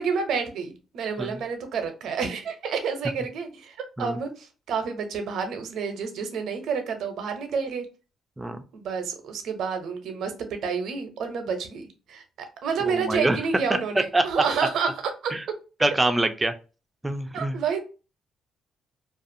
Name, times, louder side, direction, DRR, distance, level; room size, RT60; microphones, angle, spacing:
voice 1, 0.0-7.9 8.7-14.9 15.2-15.3 17.3-17.8, right 6 dB, 75° right, 6 dB, 0.6 m, -29 dB
voice 2, 12.9-13.4 13.7-14.4 15.3-15.4 15.8-16.5 17.0-17.6, right 2 dB, 15° right, 8 dB, 0.4 m, -25 dB
2.4 x 2.3 x 2.6 m, 0.33 s
cardioid pair, 90°, 0 cm